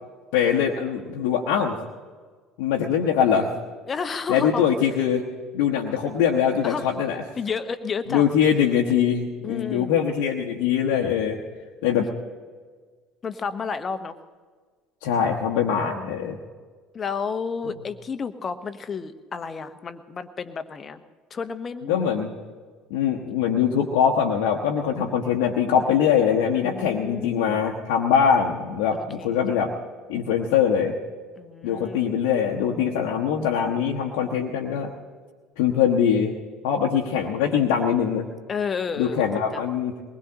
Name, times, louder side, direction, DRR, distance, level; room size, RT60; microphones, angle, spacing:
voice 1, 0.3-1.8 2.6-3.5 4.3-5.2 5.5-7.2 8.1-11.4 11.8-12.1 15.0-16.4 21.9-22.4 22.9-29.7 30.1-30.9 31.6-34.9 35.6-36.4 36.6-38.3 39.0-39.9, left 8 dB, 65° left, -2 dB, 1.1 m, -22 dB
voice 2, 3.9-4.7 6.6-6.9 7.4-8.2 9.4-9.9 13.2-14.1 15.9-16.3 16.9-21.0 21.3-22.0 26.6-27.6 28.9-29.4 31.4-32.2 38.5-39.2 39.5-39.6, left 5 dB, 35° left, 10 dB, 1.0 m, -31 dB
22.5 x 20.0 x 2.9 m, 1.5 s
figure-of-eight pair, 65°, 0 cm